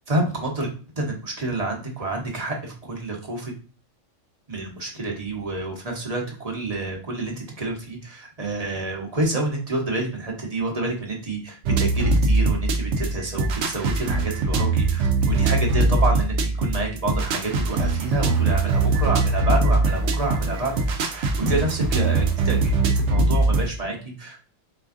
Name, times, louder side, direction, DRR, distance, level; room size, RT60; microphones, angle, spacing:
voice 1, 0.1-0.7 0.9-3.5 4.5-24.4, right 2 dB, 30° right, 0 dB, 1.0 m, -28 dB
sound 1, 11.6-23.7, right 3 dB, 70° right, 0.9 m, -22 dB
4.3 x 3.6 x 2.5 m, 0.38 s
omnidirectional pair, 1.3 m